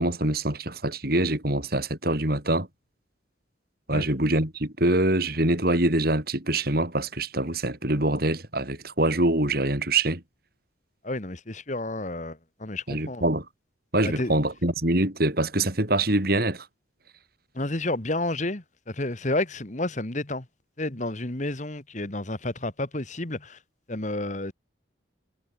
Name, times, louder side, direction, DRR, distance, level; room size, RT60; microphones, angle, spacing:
voice 1, 0.0-2.7 3.9-10.2 12.9-13.4 13.9-16.7, right 1 dB, 50° right, 4.0 m, -24 dB
voice 2, 11.0-13.2 14.0-14.4 17.5-20.4 20.8-23.6 23.9-24.5, left 2 dB, 40° left, 1.8 m, -30 dB
head